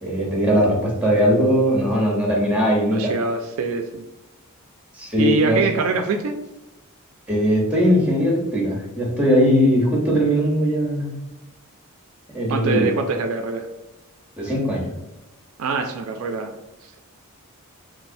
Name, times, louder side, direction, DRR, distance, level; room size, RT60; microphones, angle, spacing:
voice 1, 0.0-3.1 4.9-5.6 7.3-11.1 12.3-12.9 14.4-14.9, equal, 5° right, -2 dB, 0.8 m, -19 dB
voice 2, 2.9-4.1 5.2-6.4 12.5-13.7 15.6-16.5 16.8-17.0, right 3 dB, 65° right, 5 dB, 0.3 m, -24 dB
3.3 x 3.1 x 2.6 m, 0.98 s
head